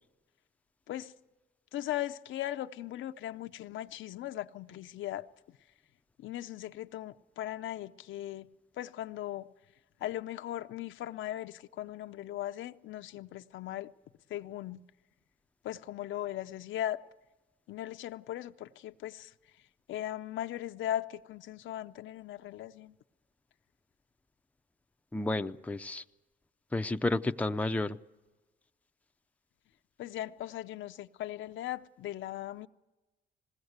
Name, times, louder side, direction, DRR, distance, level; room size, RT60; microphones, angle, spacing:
voice 1, 1.7-5.3 6.2-8.5 8.8-9.5 10.0-13.9 14.3-14.8 15.6-17.1 17.7-19.3 19.9-22.9 30.0-32.7, left 13 dB, 75° left, 0.6 m, -38 dB
voice 2, 25.1-26.0 26.7-28.0, left 2 dB, 5° left, 0.6 m, -31 dB
20.5 x 17.0 x 8.0 m
cardioid pair, 90°, 20 cm